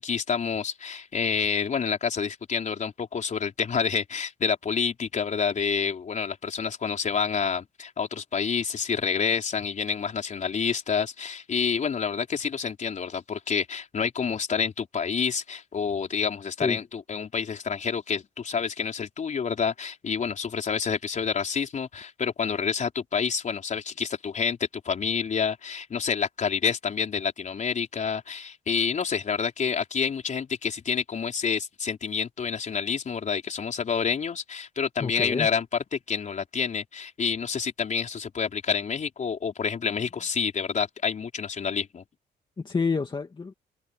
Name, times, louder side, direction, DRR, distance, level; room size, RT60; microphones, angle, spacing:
voice 1, 0.0-24.6 24.8-35.6 35.9-42.0, left 6 dB, 45° left, 4.5 m, -28 dB
voice 2, 35.0-35.5 42.6-43.5, left 4 dB, 25° left, 2.1 m, -28 dB
cardioid pair, 100°, 17 cm